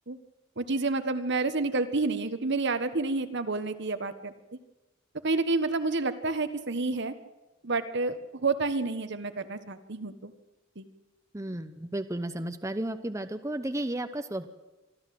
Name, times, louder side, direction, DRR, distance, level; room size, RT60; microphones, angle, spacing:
voice 1, 0.6-4.3 5.2-7.1 7.6-10.3 10.7-10.9, right 3 dB, 60° right, 10 dB, 1.4 m, -29 dB
voice 2, 11.3-14.5, right 1 dB, 15° right, 8 dB, 0.8 m, -33 dB
25.0 x 13.5 x 7.8 m, 1.1 s
head